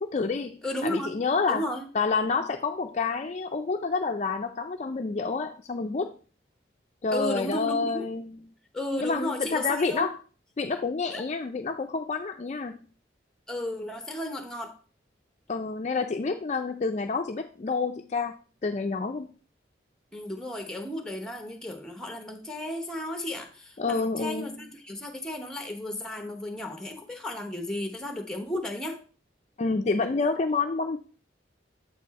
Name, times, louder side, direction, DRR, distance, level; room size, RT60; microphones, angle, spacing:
voice 1, 0.0-1.7 1.9-6.1 7.0-8.4 9.0-10.2 10.6-12.8 15.5-18.3 18.6-19.3 23.8-24.6 29.6-31.0, left 4 dB, 40° left, 6 dB, 0.4 m, -28 dB
voice 2, 0.6-1.1 1.5-1.9 7.1-8.1 8.7-10.1 11.1-11.2 13.5-14.8 20.1-29.0, left 1 dB, 5° left, 5 dB, 0.8 m, -34 dB
7.3 x 4.4 x 4.1 m, 0.38 s
head